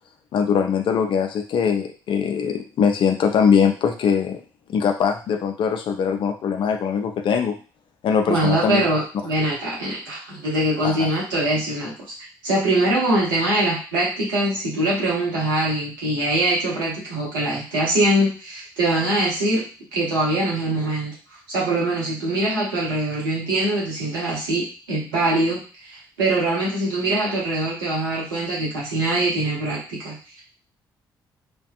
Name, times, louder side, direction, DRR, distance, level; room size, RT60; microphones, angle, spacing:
voice 1, 0.3-4.4 4.7-7.6 8.0-8.9 10.8-11.1, left 7 dB, 50° left, 5 dB, 0.4 m, -21 dB
voice 2, 8.3-11.9 12.4-19.6 19.9-30.4, right 1 dB, 80° right, -5 dB, 0.9 m, -23 dB
2.5 x 2.1 x 2.4 m, 0.36 s
figure-of-eight pair, 45°, 11 cm